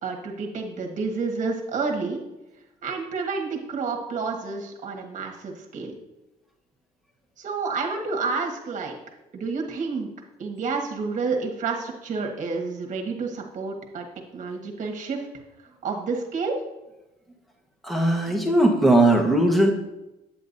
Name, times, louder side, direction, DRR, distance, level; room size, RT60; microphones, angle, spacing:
voice 1, 0.0-2.2 2.8-5.9 7.4-9.0 9.3-10.1 10.4-14.0 14.3-15.2 15.8-16.6, right 4 dB, 45° right, 1 dB, 1.5 m, -29 dB
voice 2, 17.8-19.7, right 1 dB, ahead, 0 dB, 1.1 m, -19 dB
8.7 x 7.8 x 2.6 m, 0.98 s
cardioid pair, 110°, 17 cm